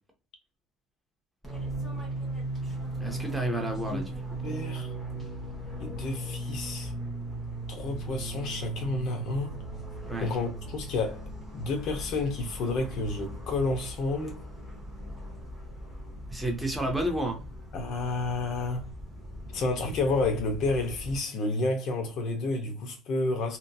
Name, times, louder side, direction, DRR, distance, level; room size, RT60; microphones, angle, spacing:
Fixed-wing aircraft airplane, 1.4-21.2, right 1 dB, 15° left, 0.9 m, -38 dB
voice 1, 3.0-4.1 10.0-10.3 16.3-17.4, right 1 dB, 5° right, 0.6 m, -30 dB
voice 2, 4.4-4.9 5.8-6.9 7.7-9.5 10.2-11.2 11.5-14.4 17.7-18.9 19.5-23.6, left 2 dB, 55° left, 0.6 m, -30 dB
2.8 x 2.5 x 2.2 m
cardioid pair, 155°, 0 cm